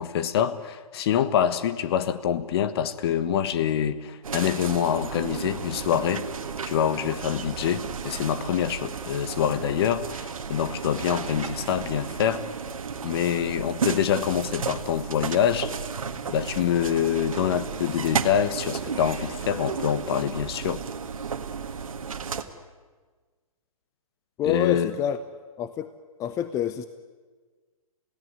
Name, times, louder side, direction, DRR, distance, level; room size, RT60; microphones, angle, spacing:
voice 1, 0.0-6.3 6.6-12.5 13.0-15.7 16.3-20.8 24.4-25.0, left 9 dB, 45° left, 13 dB, 1.4 m, -25 dB
sound 1, 4.2-22.4, right 6 dB, 65° right, 1.8 m, -33 dB
voice 2, 24.4-25.2 25.6-25.9 26.2-26.9, left 10 dB, 15° left, 12 dB, 0.7 m, -27 dB
28.5 x 17.0 x 9.4 m, 1.5 s
figure-of-eight pair, 125°, 19 cm